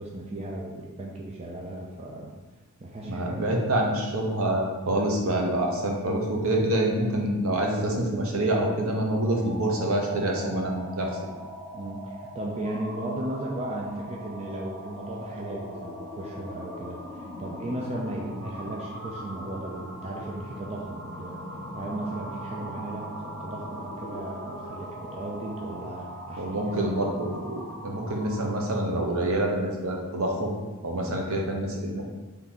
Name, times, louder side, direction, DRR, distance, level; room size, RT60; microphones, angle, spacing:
voice 1, 0.0-2.3 2.8-3.6 11.7-21.4 21.7-26.9 31.5-31.6, right 1 dB, 30° right, -3 dB, 0.5 m, -36 dB
voice 2, 3.0-11.1 26.4-30.5 30.8-32.0, right 1 dB, 65° right, 0 dB, 0.8 m, -26 dB
sound 1, 9.3-28.7, equal, 85° right, 1.2 m, -40 dB
3.7 x 3.4 x 4.2 m, 1.2 s
head